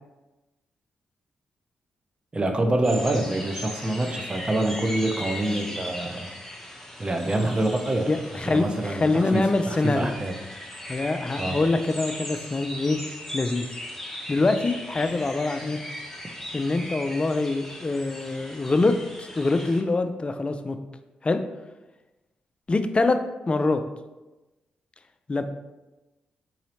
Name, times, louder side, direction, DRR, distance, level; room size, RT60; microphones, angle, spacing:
voice 1, 2.3-6.3 7.0-8.1 8.5-10.3 11.4-11.6, right 1 dB, 30° right, 4 dB, 0.6 m, -26 dB
sound 1, 2.8-19.8, left 1 dB, 5° left, 1.0 m, -38 dB
voice 2, 8.1-10.1 10.9-13.0 13.3-13.7 14.3-15.8 16.5-20.8 21.2-21.4 22.7-23.2 23.5-23.8 25.3-25.4, left 3 dB, 30° left, 8 dB, 0.4 m, -24 dB
4.0 x 2.7 x 3.1 m, 1.1 s
supercardioid pair, 50°, 4 cm